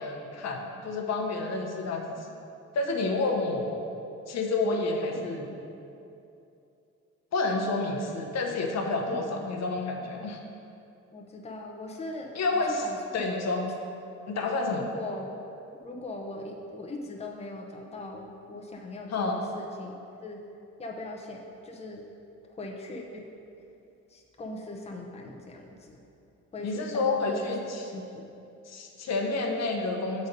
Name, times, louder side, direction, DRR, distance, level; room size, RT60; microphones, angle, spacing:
voice 1, 0.0-2.2 2.7-3.7 4.3-5.5 7.3-10.4 12.3-12.8 13.1-13.7 14.3-14.9 19.1-19.4 26.6-27.8 28.7-30.3, left 3 dB, 60° left, 2 dB, 0.8 m, -29 dB
voice 2, 1.8-2.4 3.2-3.4 5.1-5.3 9.1-9.4 11.1-13.2 14.7-15.3 15.8-19.9 20.2-20.4 20.8-22.0 22.5-23.3 24.1-26.0 26.5-27.5 27.9-28.2, left 2 dB, 20° left, 1 dB, 0.7 m, -40 dB
6.7 x 4.1 x 5.1 m, 2.7 s
cardioid pair, 90°, 30 cm